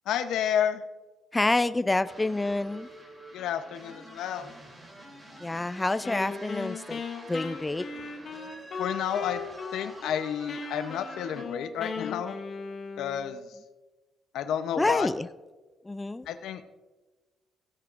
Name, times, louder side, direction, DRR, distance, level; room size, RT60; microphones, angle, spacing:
voice 1, 0.1-0.8 3.3-4.5 8.8-9.4 9.7-12.4 13.0-13.5 14.3-15.1 16.3-16.7, left 9 dB, 80° left, 10 dB, 0.7 m, -30 dB
voice 2, 1.3-2.9 5.4-7.0 7.3-7.8 14.8-15.3 15.9-16.3, left 2 dB, 15° left, 14 dB, 0.3 m, -27 dB
sound 1, 2.0-11.4, right 1 dB, 25° right, 2.9 m, -48 dB
Wind instrument woodwind instrument, 6.0-10.2 10.5-13.4, left 4 dB, 50° left, 1.4 m, -38 dB
16.5 x 9.9 x 2.5 m, 1.2 s
cardioid pair, 90°, 0 cm